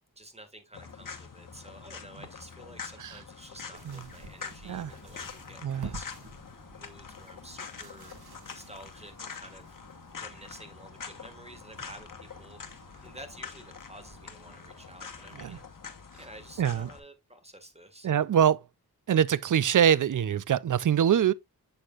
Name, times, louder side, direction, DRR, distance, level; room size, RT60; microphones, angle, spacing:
voice 1, 0.2-6.1 6.7-8.2 8.5-9.7 10.2-15.6 16.2-18.1, right 1 dB, 15° right, 1.8 m, -50 dB
sound 1, 0.7-17.0, left 6 dB, 60° left, 1.2 m, -45 dB
sound 2, 3.7-15.6, right 3 dB, 85° right, 2.0 m, -50 dB
voice 2, 5.6-5.9 15.3-15.6 16.6-16.9 18.0-18.6 19.1-21.3, right 9 dB, 55° right, 0.5 m, -24 dB
7.8 x 6.5 x 2.4 m
wide cardioid pair, 80°, 38 cm